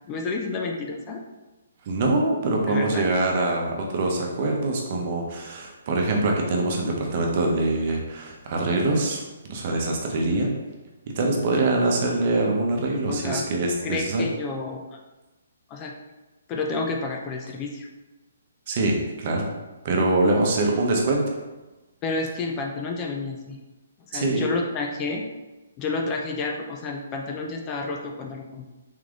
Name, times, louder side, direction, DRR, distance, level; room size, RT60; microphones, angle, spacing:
voice 1, 0.1-1.2 2.7-3.1 13.1-13.4 13.8-14.8 15.7-15.9 16.5-17.9 22.0-23.6 24.1-25.2 25.8-28.7, left 3 dB, 25° left, 2 dB, 0.5 m, -30 dB
voice 2, 1.9-9.2 9.5-10.5 11.1-14.2 18.7-19.5 19.8-21.4 24.1-24.5, right 2 dB, 45° right, 0 dB, 0.9 m, -24 dB
3.6 x 3.3 x 3.7 m, 1.1 s
hypercardioid pair, 140°, 0 cm